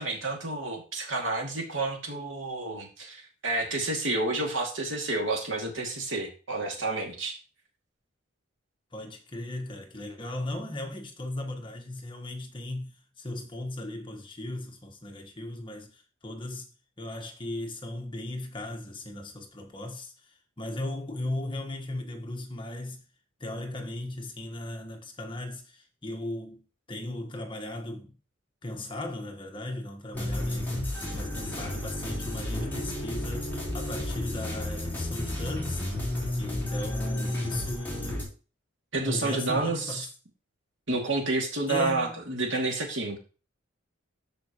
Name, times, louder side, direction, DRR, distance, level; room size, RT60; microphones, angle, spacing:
voice 1, 0.0-7.3 38.9-40.0 40.9-43.2, right 2 dB, 75° right, 2.4 m, -30 dB
voice 2, 8.9-16.7 17.0-23.0 23.4-28.2 28.6-35.8 36.4-38.3 39.0-40.1 41.7-42.2, left 1 dB, 25° left, 1.4 m, -37 dB
sound 1, 30.1-38.2, left 1 dB, 10° left, 4.1 m, -32 dB
13.0 x 5.0 x 3.0 m
head